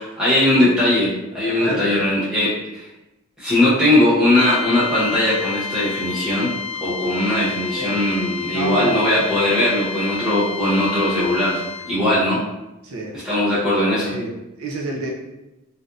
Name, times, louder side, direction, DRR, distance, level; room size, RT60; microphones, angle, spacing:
voice 1, 0.0-2.9 3.4-6.5 6.8-11.6 11.9-12.4 13.2-14.2, left 1 dB, 5° right, -10 dB, 1.0 m, -19 dB
voice 2, 1.5-1.9 7.8-8.0 8.5-9.1 11.9-12.2 12.8-13.2 14.0-15.1, right 2 dB, 85° right, -1 dB, 0.6 m, -29 dB
sound 1, 4.4-12.1, left 6 dB, 85° left, 0.4 m, -31 dB
3.3 x 2.6 x 2.5 m, 0.95 s
head